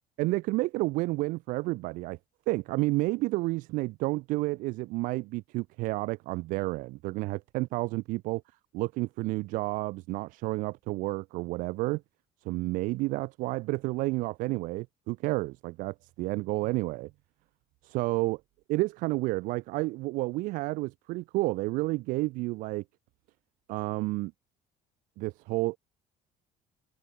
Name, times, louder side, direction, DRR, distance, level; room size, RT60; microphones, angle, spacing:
voice 1, 0.2-2.2 2.5-8.4 8.7-12.0 12.4-17.1 17.8-18.4 18.7-22.8 23.7-24.3 25.2-25.8, right 21 dB, 75° right, 1.1 m, -30 dB
cardioid pair, 160°, 14 cm